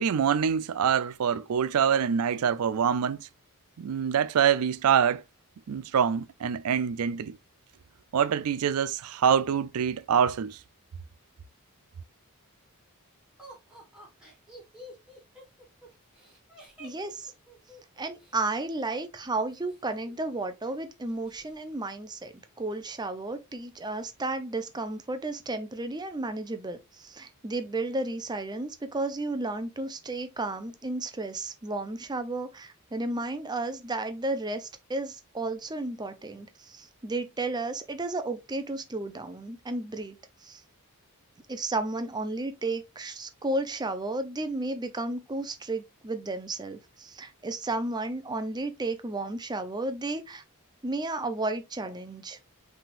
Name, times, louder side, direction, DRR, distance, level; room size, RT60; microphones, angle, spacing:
voice 1, 0.0-3.2 3.8-5.2 5.7-7.4 8.1-10.6, right 8 dB, 80° right, 0.4 m, -25 dB
Laughter, 13.4-18.5 19.5-20.4 20.7-20.8 21.1-21.5, equal, 5° right, 2.0 m, -50 dB
voice 2, 16.8-17.3 18.0-40.2 40.4-40.6 41.5-50.4 50.8-52.4, right 2 dB, 20° right, 0.6 m, -33 dB
5.7 x 3.5 x 2.5 m
head